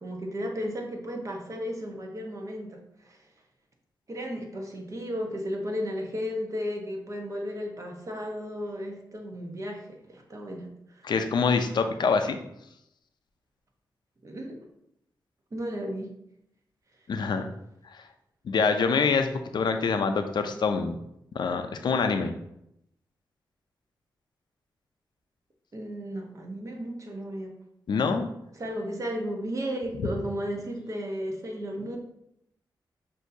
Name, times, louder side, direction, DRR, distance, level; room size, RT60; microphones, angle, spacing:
voice 1, 0.0-3.3 4.1-11.1 14.2-14.6 15.5-16.2 25.7-27.6 28.5-32.0, equal, 40° right, 1 dB, 1.0 m, -34 dB
voice 2, 11.0-12.4 17.1-17.4 17.9-18.0 18.4-21.0 21.3-22.3 27.9-28.3 30.0-30.1, left 5 dB, 70° left, 7 dB, 0.5 m, -25 dB
6.0 x 2.7 x 2.7 m, 0.79 s
cardioid pair, 60°, 8 cm